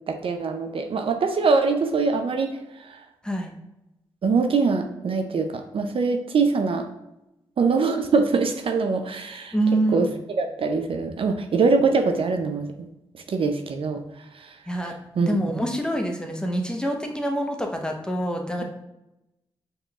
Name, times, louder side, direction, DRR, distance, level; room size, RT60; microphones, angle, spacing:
voice 1, 0.1-3.0 4.2-6.8 7.6-9.5 9.9-10.1 10.4-12.7 13.3-14.0 14.3-14.6 14.8-15.7, right 4 dB, 60° right, 6 dB, 0.4 m, -23 dB
voice 2, 9.5-10.1 14.7-14.9 15.3-18.6, right 1 dB, 10° left, 2 dB, 0.8 m, -26 dB
5.2 x 3.0 x 2.3 m, 0.92 s
supercardioid pair, 40°, 11 cm